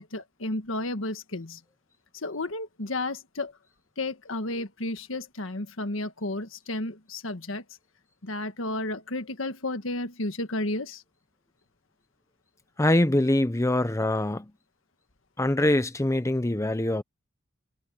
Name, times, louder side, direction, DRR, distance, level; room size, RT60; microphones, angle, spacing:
voice 1, 0.0-1.6 2.1-3.5 4.0-7.6 8.2-11.0, left 2 dB, 75° left, 1.7 m, -32 dB
voice 2, 12.8-14.5 15.4-17.0, left 1 dB, 15° left, 0.7 m, -24 dB
head